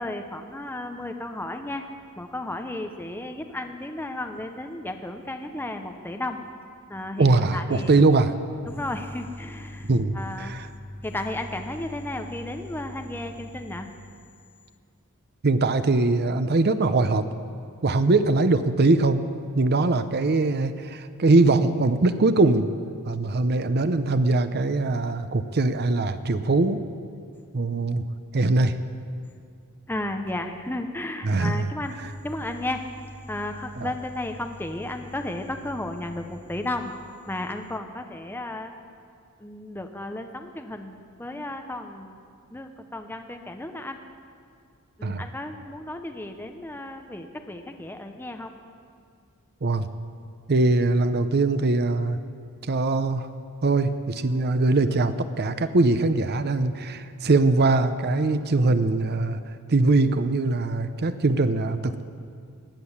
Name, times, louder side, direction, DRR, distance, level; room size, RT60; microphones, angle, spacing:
voice 1, 0.0-1.8 2.1-6.4 6.9-8.0 8.7-13.9 29.9-32.0 32.2-36.9 37.3-38.7 39.4-42.2 42.5-44.0 45.0-48.5, left 1 dB, 10° left, 5 dB, 0.7 m, -33 dB
voice 2, 7.2-8.3 9.9-10.7 15.4-17.3 17.8-19.2 19.5-22.7 23.1-26.8 27.5-28.1 28.3-28.8 31.2-31.7 33.8-33.9 45.0-45.2 49.6-49.9 50.5-52.2 52.7-53.3 53.6-59.4 59.7-62.0, right 3 dB, 45° right, 11 dB, 0.7 m, -22 dB
18.0 x 10.0 x 7.2 m, 2.3 s
head